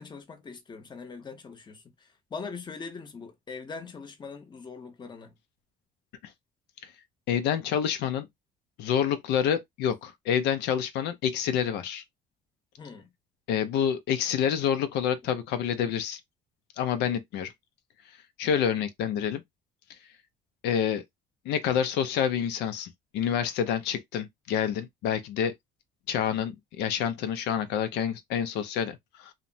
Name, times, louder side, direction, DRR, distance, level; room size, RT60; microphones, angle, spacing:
voice 1, 0.0-5.3 12.8-13.1, left 5 dB, 25° left, 0.7 m, -42 dB
voice 2, 7.3-8.3 8.8-12.0 13.5-16.2 16.8-17.5 18.4-19.4 20.6-21.0 21.5-25.5 26.1-29.3, left 8 dB, 85° left, 0.5 m, -28 dB
2.8 x 2.1 x 2.6 m
cardioid pair, 110°, 17 cm